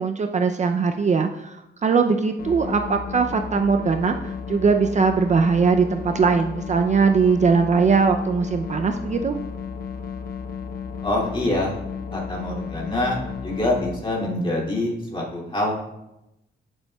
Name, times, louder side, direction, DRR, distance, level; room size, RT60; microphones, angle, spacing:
voice 1, 0.0-9.4, right 5 dB, 35° right, 6 dB, 0.5 m, -20 dB
sound 1, 2.4-14.0, left 6 dB, 50° left, 0.7 m, -33 dB
voice 2, 11.0-11.8 12.1-15.7, left 1 dB, 25° left, -3 dB, 2.4 m, -25 dB
11.0 x 7.0 x 2.3 m, 0.89 s
cardioid pair, 105°, 20 cm